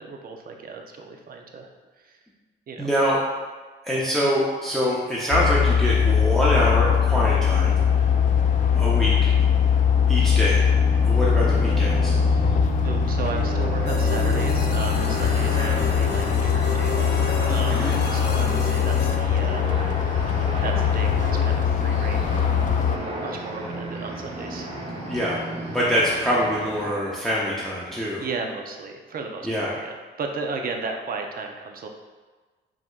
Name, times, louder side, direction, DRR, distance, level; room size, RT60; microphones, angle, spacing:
voice 1, 0.0-1.7 2.0-2.2 2.7-2.9 12.3-20.3 20.6-22.3 23.2-25.1 27.9-31.9, right 4 dB, 45° right, 3 dB, 0.6 m, -35 dB
voice 2, 2.8-3.2 3.8-8.0 8.7-9.3 10.1-10.6 11.0-12.2 17.7-17.9 25.0-25.4 25.7-28.3 29.4-29.7, equal, ahead, -6 dB, 0.7 m, -24 dB
sound 1, 5.3-23.0, left 7 dB, 40° left, 0.4 m, -21 dB
sound 2, 7.3-26.9, right 2 dB, 30° right, 1.0 m, -34 dB
sound 3, 13.9-19.2, left 3 dB, 60° left, 0.8 m, -32 dB
4.9 x 3.6 x 2.4 m, 1.3 s
cardioid pair, 90°, 20 cm